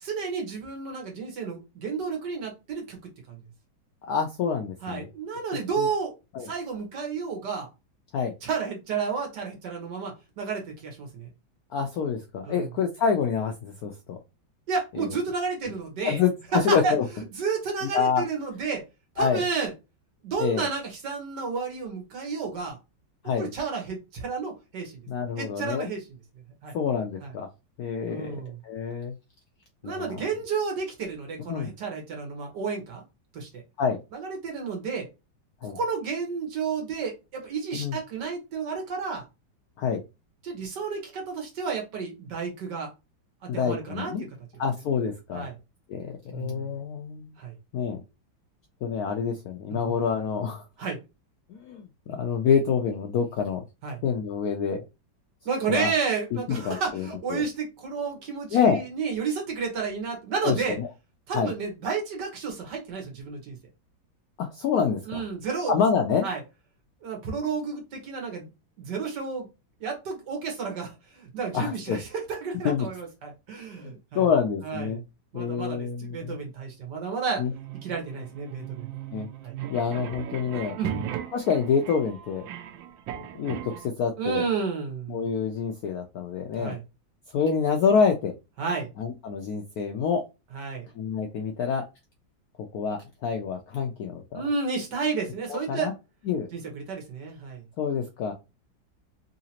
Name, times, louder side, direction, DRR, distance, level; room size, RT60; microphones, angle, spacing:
voice 1, 0.0-3.0 3.3-3.4 4.8-6.1 6.4-7.7 8.4-11.3 12.5-12.7 14.7-16.2 16.5-16.9 17.3-18.8 19.2-19.7 20.2-22.8 23.4-25.0 25.4-26.0 26.6-26.7 27.2-27.3 28.1-28.6 29.8-33.0 33.3-33.6 34.1-35.1 35.6-39.2 40.4-42.9 43.5-44.1 45.3-45.6 46.3-46.7 47.4-47.6 49.9-50.0 50.8-51.0 53.8-54.0 55.5-60.8 61.3-63.6 65.1-65.8 66.2-66.4 67.0-68.5 68.8-69.5 69.8-74.2 74.6-75.0 75.3-77.4 77.8-78.9 79.4-79.5 80.8-81.0 84.2-85.2 86.6-86.8 88.6-88.9 90.5-90.9 94.3-95.9 96.5-97.6, right 5 dB, 65° right, 1 dB, 1.7 m, -31 dB
voice 2, 4.0-5.1 5.8-5.9 6.3-6.5 8.1-8.3 11.7-14.2 15.0-15.1 16.0-17.0 17.9-18.2 19.2-19.4 20.4-20.7 23.2-23.5 25.1-25.9 26.7-27.5 27.8-28.4 28.6-29.1 29.8-30.3 31.5-31.7 33.8-34.0 35.6-35.8 37.7-38.0 39.8-40.0 43.5-44.3 44.6-45.5 45.9-47.4 47.7-48.0 48.8-50.6 51.5-53.6 54.0-54.8 55.7-55.9 56.3-56.4 56.6-57.4 58.5-58.8 60.4-60.9 61.3-61.5 64.4-65.2 65.7-66.3 71.5-72.0 72.6-72.9 73.8-75.0 75.3-76.4 77.4-77.5 79.1-79.3 79.7-80.8 81.3-82.4 83.4-84.4 85.1-86.8 87.3-88.3 89.0-90.2 91.0-91.8 92.7-94.4 95.5-95.9 96.3-96.5 97.8-98.3, left 6 dB, 75° left, 4 dB, 0.8 m, -27 dB
sound 1, 77.5-83.9, right 10 dB, 80° right, 1.4 m, -38 dB
3.9 x 2.8 x 2.8 m, 0.26 s
omnidirectional pair, 2.1 m